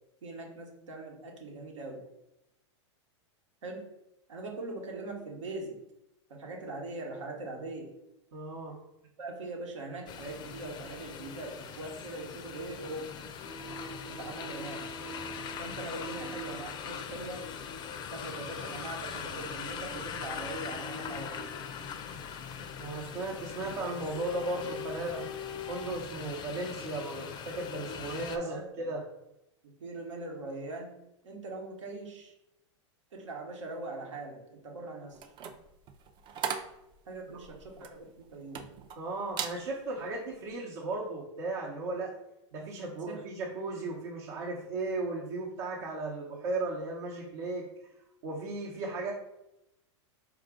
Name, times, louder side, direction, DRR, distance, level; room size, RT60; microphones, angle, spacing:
voice 1, 0.2-2.0 3.6-3.9 4.3-5.8 6.3-7.9 9.2-13.1 14.0-14.9 15.6-17.4 18.1-21.5 25.9-26.4 28.4-28.7 29.6-30.9 31.2-32.3 33.1-35.3 37.0-38.6 43.1-43.2, right 2 dB, 85° right, 1 dB, 1.2 m, -41 dB
voice 2, 8.3-8.8 22.8-25.3 25.7-29.0 38.9-42.1 42.5-47.6 48.2-49.1, right 2 dB, 65° right, -3 dB, 0.9 m, -36 dB
sound 1, 10.1-28.4, left 7 dB, 30° left, 0.4 m, -41 dB
sound 2, 13.4-19.5 19.8-21.4 23.3-23.6 23.9-25.9, left 2 dB, 85° left, 0.5 m, -45 dB
sound 3, 35.1-39.0 39.3-39.6 40.1-40.3, right 7 dB, 30° right, 0.4 m, -38 dB
4.7 x 2.4 x 3.7 m, 0.88 s
hypercardioid pair, 115°, 15 cm